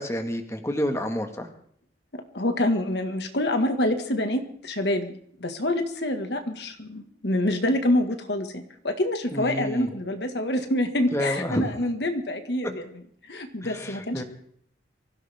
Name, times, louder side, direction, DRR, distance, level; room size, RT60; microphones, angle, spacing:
voice 1, 0.0-1.5 9.3-9.9 11.1-11.7 12.6-12.7 13.6-14.2, equal, 15° left, 5 dB, 1.8 m, -29 dB
voice 2, 2.1-5.1 5.4-12.8 13.3-14.2, left 1 dB, 65° left, 6 dB, 1.9 m, -26 dB
24.0 x 16.5 x 3.7 m, 0.64 s
head